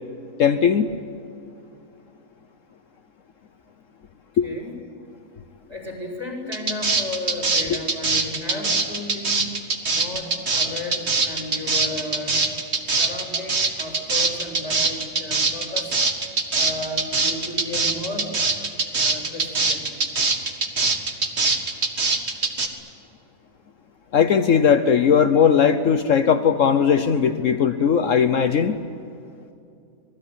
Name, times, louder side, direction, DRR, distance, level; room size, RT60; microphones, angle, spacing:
voice 1, 0.4-0.9 4.4-4.5 24.1-28.8, left 7 dB, 65° left, 9 dB, 1.2 m, -18 dB
voice 2, 5.7-9.4 9.9-12.4 13.0-15.9 16.5-18.3 19.0-19.9, left 2 dB, 15° right, 1 dB, 6.4 m, -33 dB
sound 1, 6.5-22.7, right 3 dB, 50° right, 2.1 m, -22 dB
26.5 x 20.0 x 9.9 m, 2.6 s
omnidirectional pair, 1.5 m